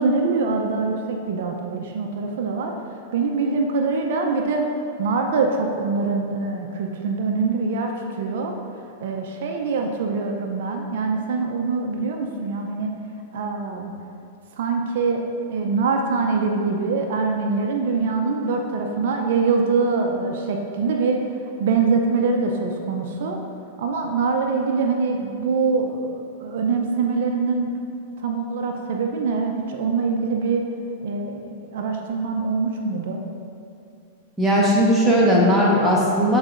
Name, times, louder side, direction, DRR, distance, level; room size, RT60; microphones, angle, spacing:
voice 1, 0.0-2.7 3.1-4.6 5.0-8.5 9.0-12.9 13.3-13.9 14.6-15.2 15.5-21.2 21.6-23.4 23.8-27.7 28.2-30.6 31.0-33.2, right 4 dB, 70° right, 2 dB, 0.5 m, -24 dB
voice 2, 34.4-36.4, equal, ahead, -6 dB, 1.2 m, -17 dB
8.1 x 4.7 x 2.6 m, 2.5 s
hypercardioid pair, 130°, 0 cm